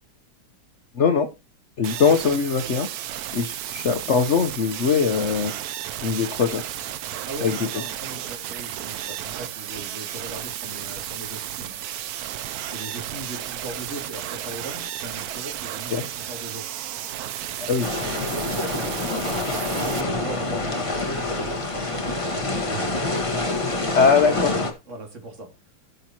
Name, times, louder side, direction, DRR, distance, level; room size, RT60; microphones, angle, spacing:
voice 1, 0.9-1.3 1.8-2.9 3.3-5.5 6.0-6.6 7.4-7.7 15.9-16.0 17.7-18.0 23.9-24.6, left 5 dB, 65° left, 0.7 m, -21 dB
sound 1, 1.8-20.0, right 11 dB, 80° right, 0.8 m, -33 dB
voice 2, 7.3-11.8 12.7-16.8 18.3-19.4 19.8-22.8 24.9-25.5, right 2 dB, 35° right, 2.8 m, -38 dB
sound 2, 17.8-24.7, left 2 dB, 20° left, 1.2 m, -26 dB
17.0 x 6.1 x 2.9 m
omnidirectional pair, 2.3 m